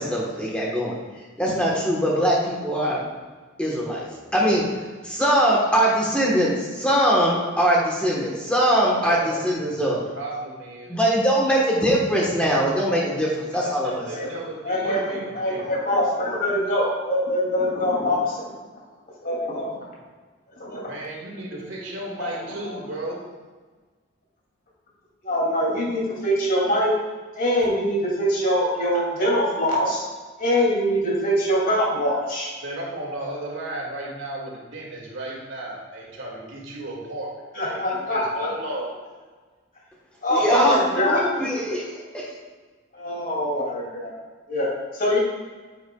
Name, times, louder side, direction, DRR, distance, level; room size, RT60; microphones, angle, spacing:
voice 1, 0.0-3.1 3.6-10.0 10.9-14.3 40.3-42.4, equal, 5° left, -5 dB, 1.3 m, -22 dB
voice 2, 9.9-11.0 12.4-12.5 12.8-12.9 13.5-15.2 15.5-15.6 20.8-23.3 32.6-39.0, right 1 dB, 75° right, -3 dB, 2.2 m, -34 dB
voice 3, 14.6-18.5 19.2-19.7 20.6-20.9 22.2-22.3 22.6-22.7 25.2-26.9 27.4-30.0 30.4-32.5 37.5-38.5 40.2-41.2 42.9-44.2 44.5-45.2, equal, 45° left, -4 dB, 2.7 m, -23 dB
10.0 x 8.4 x 2.4 m, 1.4 s
head